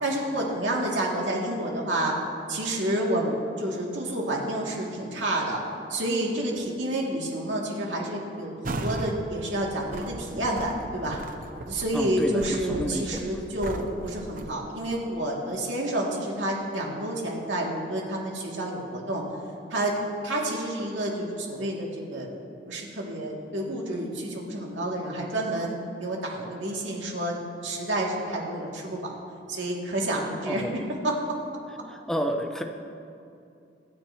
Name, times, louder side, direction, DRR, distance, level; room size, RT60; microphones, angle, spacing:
voice 1, 0.0-2.2 2.5-5.6 5.9-11.2 11.6-19.2 19.7-19.9 20.2-22.3 22.7-27.3 27.6-29.1 29.5-31.2, right 1 dB, 85° right, -3 dB, 2.5 m, -29 dB
sound 1, 8.6-9.2 9.6-14.5, right 2 dB, 50° right, 0.7 m, -37 dB
voice 2, 11.9-13.2 30.5-30.9 32.1-32.6, equal, 5° left, 4 dB, 0.8 m, -30 dB
25.0 x 9.8 x 3.0 m, 2.6 s
head